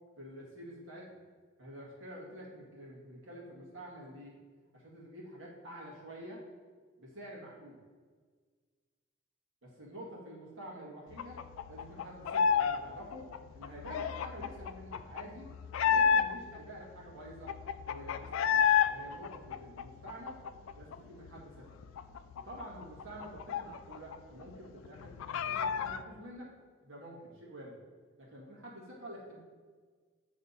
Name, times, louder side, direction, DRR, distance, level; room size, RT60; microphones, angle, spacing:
voice 1, 0.2-1.1 1.6-4.4 4.7-6.4 7.0-7.8 9.6-11.4 11.7-15.5 15.8-17.5 17.8-20.4 20.8-21.8 22.3-25.1 25.5-26.5 26.8-27.8 28.2-29.4, equal, 70° right, -4 dB, 1.8 m, -48 dB
sound 1, 11.2-12.8 13.1-16.6 17.0-17.1 17.3-18.9 19.2-21.0 21.3-21.4 21.7-24.2 24.4-24.5 24.9-26.0, left 7 dB, 75° left, 0.3 m, -30 dB
8.5 x 3.4 x 4.0 m, 1.5 s
head